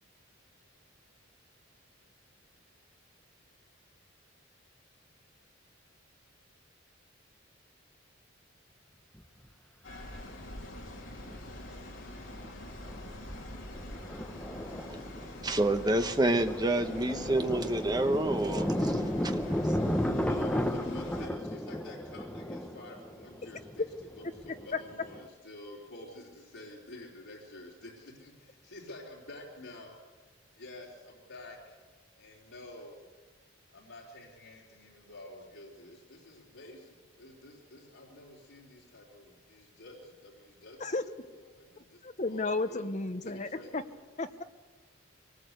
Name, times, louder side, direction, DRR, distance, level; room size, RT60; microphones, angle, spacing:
Thunder, 9.2-9.3 10.6-11.4 11.7-11.8 12.2-12.5 12.8-25.2, equal, 5° left, 1.0 m, -34 dB
sound 1, 9.8-21.3, left 1 dB, 65° left, 3.5 m, -45 dB
voice 1, 15.4-20.0, right 1 dB, 20° right, 7 dB, 1.1 m, -29 dB
voice 2, 20.1-23.8 24.2-30.0 30.5-31.8 32.2-33.1 33.7-41.0 41.3-42.9 43.2-43.8, left 2 dB, 80° left, -5 dB, 3.7 m, -49 dB
voice 3, 42.0-43.8 44.2-44.4, left 3 dB, 35° left, 10 dB, 0.9 m, -33 dB
24.0 x 19.0 x 8.1 m, 1.4 s
head